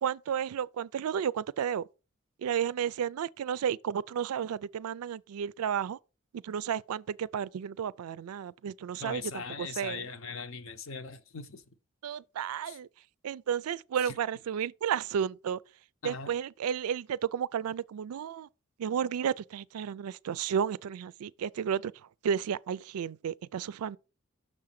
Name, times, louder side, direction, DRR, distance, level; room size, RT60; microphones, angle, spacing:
voice 1, 0.0-1.9 2.4-6.0 6.3-10.1 12.0-12.9 13.2-15.6 16.0-18.5 18.8-21.9 22.2-24.0, right 8 dB, 90° right, 0.3 m, -32 dB
voice 2, 9.0-11.6 12.7-12.8 14.0-14.1 16.0-16.3, left 5 dB, 70° left, 0.7 m, -40 dB
6.3 x 3.7 x 5.8 m
head